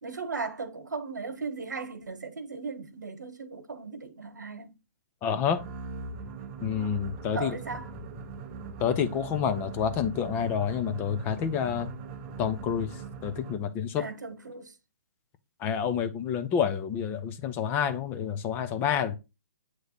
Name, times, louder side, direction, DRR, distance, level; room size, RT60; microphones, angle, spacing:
voice 1, 0.0-4.7 7.3-7.9 14.0-14.7, right 4 dB, 90° right, 1.2 m, -37 dB
voice 2, 5.2-5.6 6.6-7.6 8.8-12.0 12.4-14.0 15.6-19.2, left 8 dB, 20° left, 0.6 m, -28 dB
sound 1, 5.5-13.8, right 3 dB, 25° right, 0.7 m, -41 dB
8.2 x 3.1 x 4.1 m
hypercardioid pair, 145°, 9 cm